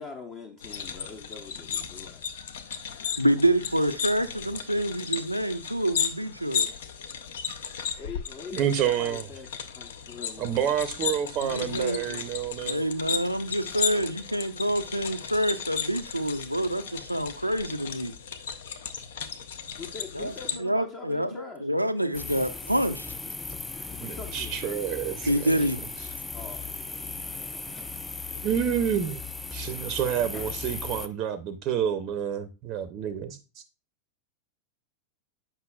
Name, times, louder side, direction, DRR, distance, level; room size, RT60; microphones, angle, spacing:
voice 1, 0.0-2.4 8.0-9.5 9.8-10.6 19.8-21.7 23.9-24.5 26.3-27.9, left 4 dB, 30° left, 0.8 m, -43 dB
sound 1, 0.6-20.6, left 7 dB, 60° left, 0.6 m, -35 dB
voice 2, 3.2-6.7 11.4-12.2 12.6-18.2 20.1-20.3 20.6-23.1 25.3-25.8, right 1 dB, 90° right, 0.4 m, -27 dB
voice 3, 8.5-9.2 10.4-12.8 24.0-25.5 28.4-29.2 29.5-33.4, right 9 dB, 35° right, 0.6 m, -28 dB
sound 2, 22.1-31.1, left 4 dB, 10° left, 0.4 m, -37 dB
7.7 x 5.6 x 2.3 m
figure-of-eight pair, 90°, 0 cm